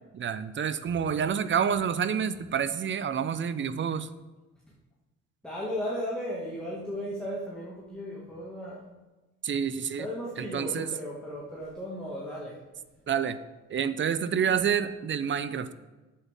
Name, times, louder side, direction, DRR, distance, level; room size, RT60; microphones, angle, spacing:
voice 1, 0.1-4.1 9.4-10.1 10.4-10.9 13.1-13.4 13.7-15.7, right 7 dB, 40° right, 13 dB, 0.5 m, -28 dB
voice 2, 5.4-8.9 10.0-12.6, equal, 5° left, -6 dB, 1.8 m, -35 dB
8.1 x 7.7 x 3.5 m, 1.1 s
cardioid pair, 90°, 30 cm